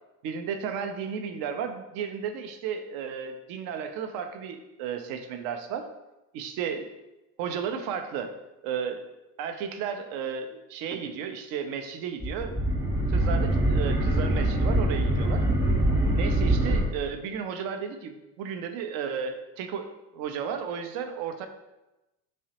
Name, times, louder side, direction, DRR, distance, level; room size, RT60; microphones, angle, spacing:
voice 1, 0.2-5.9 6.3-6.9 7.4-8.3 8.6-9.0 9.4-12.6 13.1-15.5 16.1-18.1 18.4-21.5, right 7 dB, 50° right, 7 dB, 0.5 m, -33 dB
sound 1, 12.2-16.8, right 1 dB, 5° right, 0.8 m, -24 dB
3.1 x 2.7 x 2.8 m, 0.99 s
hypercardioid pair, 70°, 45 cm